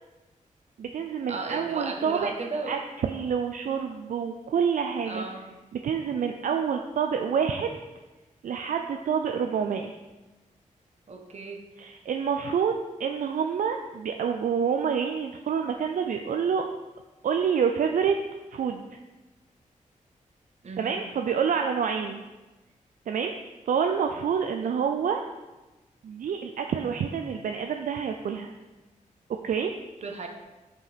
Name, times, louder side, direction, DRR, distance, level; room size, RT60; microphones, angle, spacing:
voice 1, 0.8-2.3 2.7-5.2 5.8-7.7 8.4-9.9 11.8-12.7 13.0-16.6 17.2-18.2 18.5-18.9 20.8-22.2 23.1-23.3 23.7-25.2 26.0-28.5 29.4-29.7, right 7 dB, 75° right, 4 dB, 0.5 m, -27 dB
voice 2, 1.3-2.8 5.1-5.5 11.1-11.7 20.6-21.0 24.6-24.7 30.0-30.3, right 3 dB, 55° right, 4 dB, 1.2 m, -35 dB
7.9 x 5.5 x 5.0 m, 1.1 s
wide cardioid pair, 105°, 14 cm